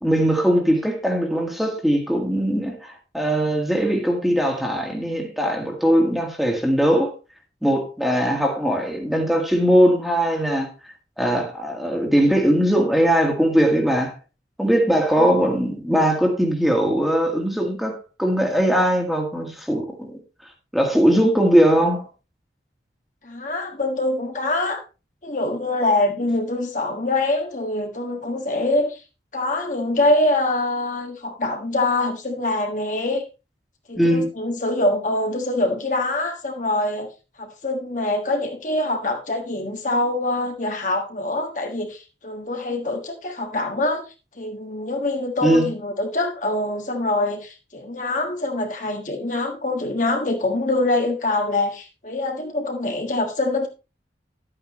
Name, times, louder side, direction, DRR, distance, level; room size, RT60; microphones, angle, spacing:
voice 1, 0.0-7.1 7.6-14.1 14.6-20.2 20.7-22.1 34.0-34.2 45.4-45.7, equal, ahead, 1.8 m, -20 dB
voice 2, 23.2-24.8 25.2-29.0 29.3-33.2 33.9-37.1 37.4-44.0 44.4-53.7, left 2 dB, 45° left, 1.5 m, -24 dB
11.5 x 8.8 x 3.1 m
head